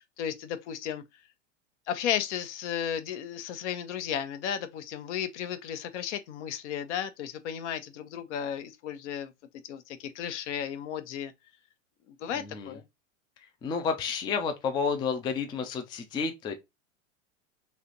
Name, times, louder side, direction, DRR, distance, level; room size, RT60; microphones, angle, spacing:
voice 1, 0.2-1.0 1.9-9.3 9.7-11.3 12.2-12.8, left 9 dB, 65° left, 0.8 m, -34 dB
voice 2, 12.3-12.8 13.6-16.5, left 5 dB, 15° left, 0.3 m, -30 dB
3.2 x 2.9 x 3.8 m
hypercardioid pair, 115°, 38 cm